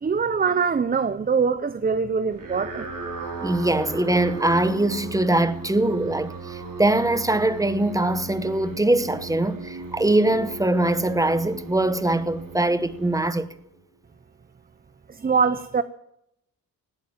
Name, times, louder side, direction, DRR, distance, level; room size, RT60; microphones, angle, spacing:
voice 1, 0.0-2.9 15.1-15.8, right 5 dB, 25° right, 0.6 m, -23 dB
sound 1, 2.3-13.8, right 3 dB, 60° right, 3.9 m, -37 dB
voice 2, 3.4-13.5, right 1 dB, 10° right, 1.0 m, -22 dB
18.0 x 8.6 x 9.1 m
wide cardioid pair, 115°, 36 cm